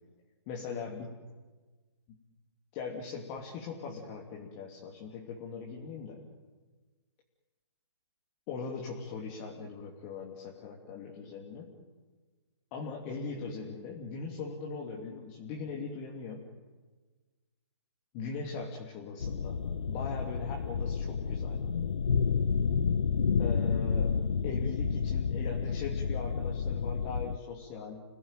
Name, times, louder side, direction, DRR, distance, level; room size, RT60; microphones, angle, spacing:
voice 1, 0.5-1.2 2.7-6.2 8.5-11.7 12.7-16.4 18.1-21.6 23.4-24.2 24.4-28.0, left 4 dB, 25° left, -1 dB, 3.0 m, -40 dB
sound 1, 19.2-27.4, left 6 dB, 70° left, 1.0 m, -30 dB
30.0 x 17.0 x 9.2 m, 1.3 s
hypercardioid pair, 150°, 15 cm